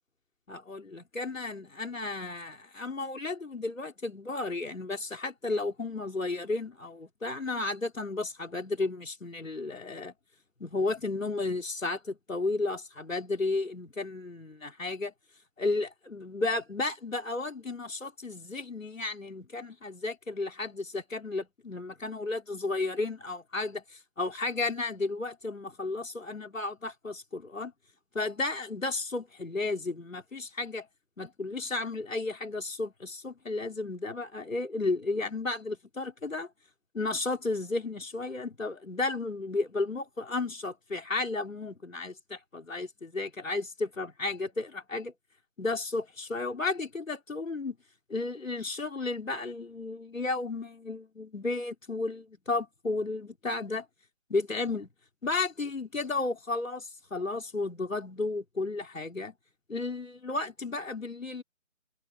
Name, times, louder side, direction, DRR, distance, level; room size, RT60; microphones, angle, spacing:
voice 1, 0.5-10.1 10.6-15.1 15.6-27.7 28.1-30.9 31.2-36.5 36.9-45.1 45.6-47.8 48.1-53.9 54.3-54.9 55.2-59.3 59.7-61.4, left 3 dB, 85° left, 4.5 m, -33 dB
figure-of-eight pair, 180°, 38 cm